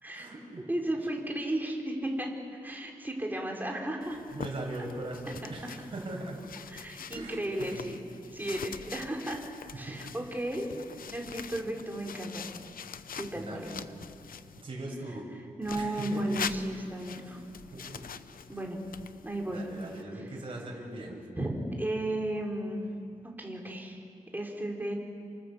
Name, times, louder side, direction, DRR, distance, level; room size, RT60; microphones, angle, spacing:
voice 1, 0.1-0.6 4.3-6.4 7.1-7.8 9.7-10.0 10.7-11.1 11.7-11.8 13.3-13.9 14.6-15.3 15.7-16.4 17.2-18.0 19.5-21.2, right 2 dB, 40° right, -1 dB, 6.8 m, -40 dB
voice 2, 0.7-2.3 2.6-4.2 5.6-5.7 6.7-8.0 8.3-9.4 9.8-10.7 11.1-12.4 13.1-13.6 15.6-17.4 18.5-18.8 19.2-19.6 21.4-22.9 23.4-24.0 24.3-24.9, right 1 dB, 15° right, 0 dB, 4.0 m, -34 dB
sound 1, 4.0-14.6 15.6-20.0, left 7 dB, 80° left, 0.8 m, -44 dB
29.5 x 25.5 x 7.2 m, 2.4 s
wide cardioid pair, 125°, 14 cm